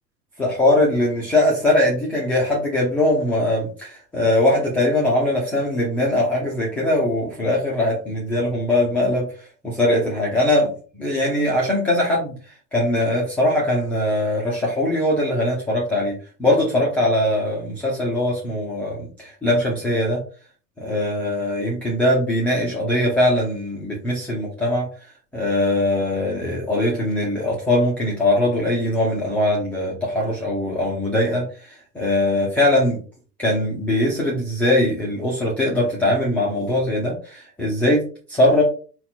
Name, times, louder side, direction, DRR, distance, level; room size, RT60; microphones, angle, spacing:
voice 1, 0.4-9.3 9.6-10.7 10.9-12.3 12.7-20.2 20.8-24.9 25.3-31.5 31.9-33.0 33.4-38.6, left 1 dB, 5° left, -5 dB, 0.3 m, -21 dB
4.0 x 2.3 x 4.0 m, 0.39 s
figure-of-eight pair, 85°, 48 cm